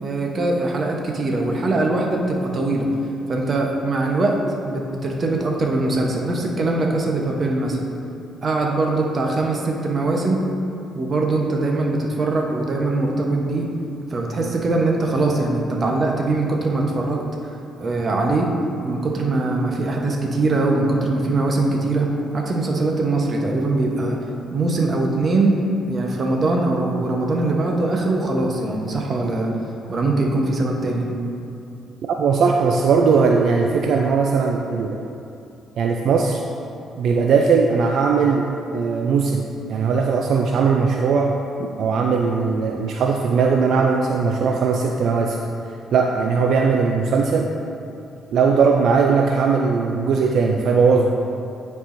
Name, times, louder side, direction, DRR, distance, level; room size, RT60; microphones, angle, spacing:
voice 1, 0.0-2.9 3.3-4.4 4.6-7.8 8.4-10.4 10.9-13.7 14.1-18.5 18.8-24.2 24.5-25.6 25.9-29.5 29.9-31.1, right 2 dB, 40° right, 0 dB, 0.9 m, -22 dB
voice 2, 32.2-35.1 35.8-36.4 37.0-41.3 41.6-45.4 45.9-47.5 48.3-51.1, right 5 dB, 70° right, 1 dB, 0.4 m, -19 dB
9.9 x 4.6 x 2.6 m, 2.6 s
cardioid pair, 90°, 0 cm